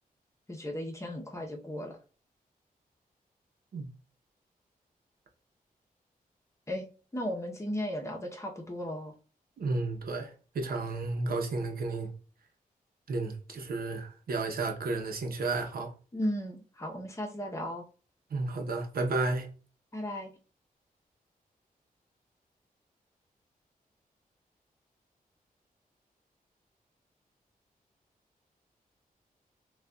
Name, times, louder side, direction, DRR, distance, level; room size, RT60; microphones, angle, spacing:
voice 1, 0.5-2.0 6.7-6.8 7.1-9.1 16.1-17.8 19.9-20.3, equal, 20° left, 0.8 m, -35 dB
voice 2, 9.6-12.1 13.1-15.9 18.3-19.5, right 3 dB, 80° right, 0.8 m, -32 dB
6.3 x 2.4 x 2.3 m
wide cardioid pair, 130°, 15 cm